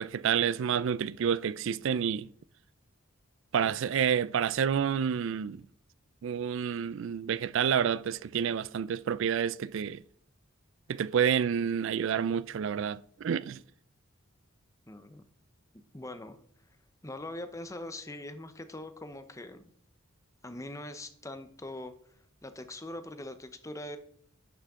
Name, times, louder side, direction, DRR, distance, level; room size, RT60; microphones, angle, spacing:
voice 1, 0.0-2.3 3.5-5.6 6.2-10.0 10.9-13.6, right 8 dB, 65° right, 0.4 m, -29 dB
voice 2, 14.9-15.2 15.9-16.4 17.0-19.6 20.4-21.9 22.4-24.0, left 1 dB, 15° left, 0.7 m, -42 dB
11.5 x 6.5 x 3.7 m
head